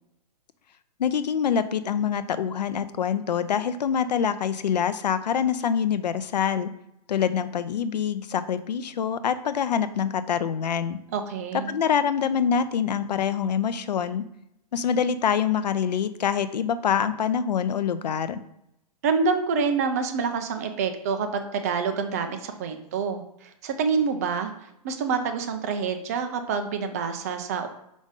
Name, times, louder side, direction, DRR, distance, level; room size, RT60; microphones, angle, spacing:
voice 1, 1.0-6.7 7.1-11.0 11.7-14.2 14.7-18.4, left 7 dB, 90° left, 13 dB, 0.6 m, -25 dB
voice 2, 11.1-11.7 19.0-27.7, right 5 dB, 25° right, 7 dB, 0.4 m, -27 dB
5.3 x 5.1 x 3.6 m, 0.79 s
hypercardioid pair, 165°, 21 cm